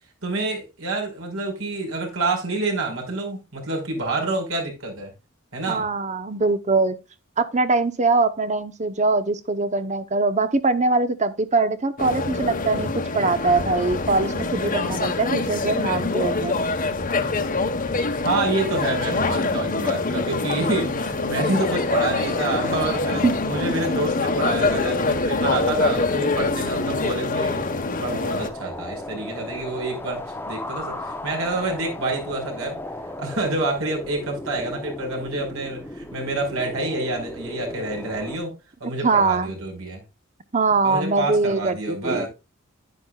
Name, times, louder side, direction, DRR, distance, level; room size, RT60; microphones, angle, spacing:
voice 1, 0.2-5.1 5.5-5.9 18.2-27.7 28.0-32.8 33.2-38.5 38.8-40.0 40.8-42.3, right 2 dB, 65° right, 5.2 m, -27 dB
voice 2, 5.7-7.0 7.4-12.9 13.1-16.6 23.2-23.3 39.0-39.5 40.5-42.3, right 3 dB, 35° right, 1.0 m, -22 dB
sound 1, 12.0-28.5, left 3 dB, 40° left, 1.3 m, -25 dB
sound 2, 21.6-38.4, left 1 dB, 10° left, 0.9 m, -36 dB
10.5 x 10.5 x 2.4 m
head